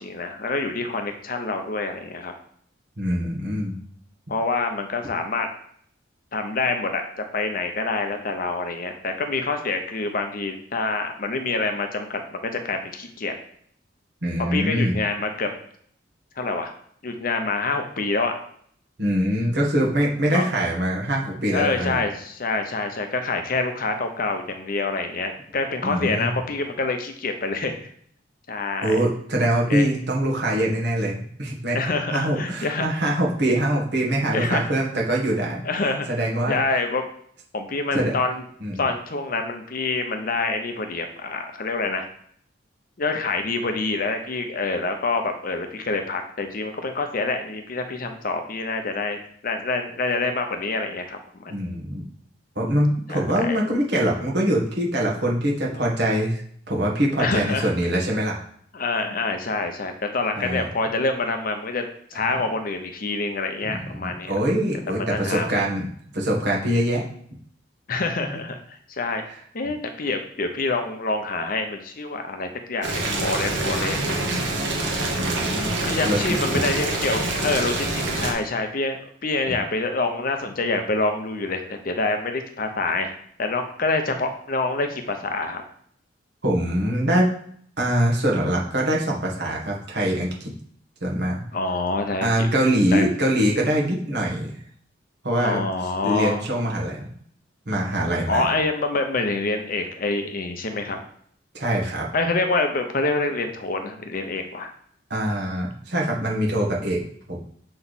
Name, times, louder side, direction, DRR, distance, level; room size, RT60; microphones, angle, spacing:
voice 1, 0.0-2.3 4.3-5.5 6.3-7.0 7.3-13.3 14.5-15.5 16.4-16.7 17.0-18.4 20.3-20.5 21.5-27.9 28.5-29.0 29.7-29.9 31.7-32.9 34.3-34.7 35.6-36.1 36.4-37.0 37.5-38.4 38.7-42.1 43.0-49.2 49.4-51.6 53.1-53.6 57.2-57.7 58.7-61.9 62.1-64.3 64.9-65.6 67.9-69.2 69.5-74.2 75.8-85.6 91.5-92.5 92.9-93.0 95.4-96.4 98.3-101.0 102.1-104.7, left 3 dB, 50° left, 5 dB, 0.8 m, -26 dB
voice 2, 3.0-3.8 14.2-14.9 19.0-22.0 25.8-26.3 28.8-31.8 32.1-35.6 36.1-36.6 37.9-38.1 38.6-38.8 51.5-52.1 52.5-56.4 56.7-58.4 60.4-60.6 63.6-65.9 66.1-67.0 75.1-75.7 76.0-76.4 86.4-87.3 87.8-90.5 91.0-91.4 92.2-94.5 95.2-95.6 96.0-97.0 97.6-98.4 101.5-102.1 105.1-107.0 107.3-107.4, right 1 dB, 60° right, -2 dB, 1.5 m, -23 dB
Boiling, 72.8-78.3, right 2 dB, 80° right, 1.3 m, -26 dB
6.9 x 3.3 x 4.1 m, 0.62 s
head